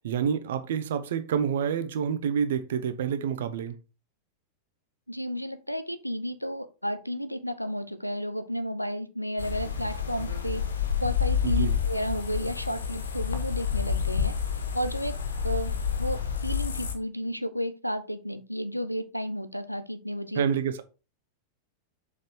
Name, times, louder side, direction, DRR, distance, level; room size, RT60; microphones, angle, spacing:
voice 1, 0.0-3.7 11.4-11.8 20.3-20.8, right 7 dB, 60° right, 0.9 m, -28 dB
voice 2, 5.1-10.6 11.0-14.3 14.7-15.2 15.4-20.4, equal, 90° left, 0.6 m, -32 dB
sound 1, 9.4-16.9, left 7 dB, 70° left, 1.0 m, -29 dB
6.5 x 5.0 x 3.5 m
figure-of-eight pair, 90°, 0 cm